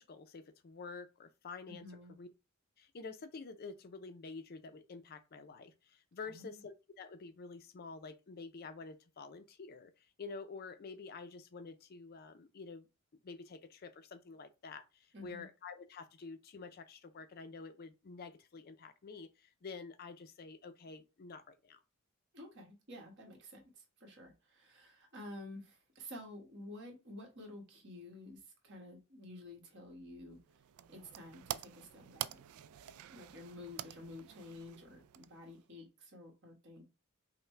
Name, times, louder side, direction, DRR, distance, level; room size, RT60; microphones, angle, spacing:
voice 1, 0.0-1.8 2.2-2.3 2.8-9.9 10.2-12.9 13.2-21.8, left 4 dB, 45° left, 0.4 m, -49 dB
voice 2, 1.7-2.1 6.2-6.6 15.1-15.4 22.3-30.4 30.9-32.4 33.1-36.8, left 1 dB, 55° right, 1.5 m, -51 dB
sound 1, 30.3-35.7, right 12 dB, 80° right, 0.3 m, -47 dB
5.5 x 2.1 x 3.2 m
head